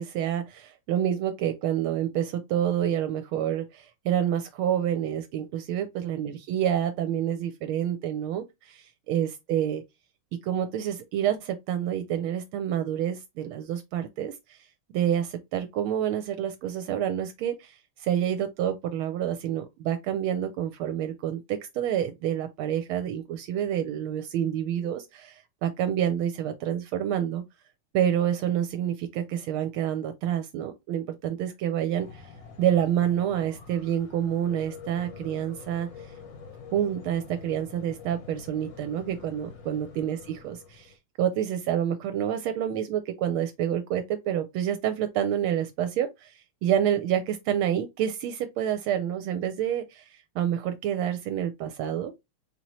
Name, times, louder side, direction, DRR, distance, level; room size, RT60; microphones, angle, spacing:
voice 1, 0.0-9.8 10.4-14.6 14.9-27.4 27.9-32.3 32.6-35.9 36.7-52.1, right 10 dB, 80° right, 1.4 m, -28 dB
sound 1, 32.0-41.0, left 5 dB, 55° left, 1.1 m, -46 dB
4.4 x 2.8 x 3.0 m
omnidirectional pair, 2.4 m